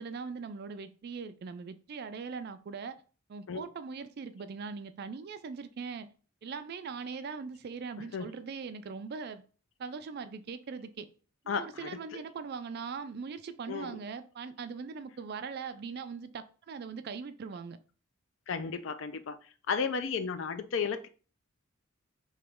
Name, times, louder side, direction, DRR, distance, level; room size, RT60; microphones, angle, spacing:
voice 1, 0.0-3.0 3.3-6.1 6.4-9.4 9.8-11.1 11.4-17.8, right 5 dB, 50° right, 11 dB, 0.3 m, -40 dB
voice 2, 11.5-11.9 13.7-13.9 18.5-19.4 19.7-21.1, left 5 dB, 65° left, 10 dB, 0.4 m, -33 dB
3.2 x 2.9 x 3.5 m, 0.38 s
head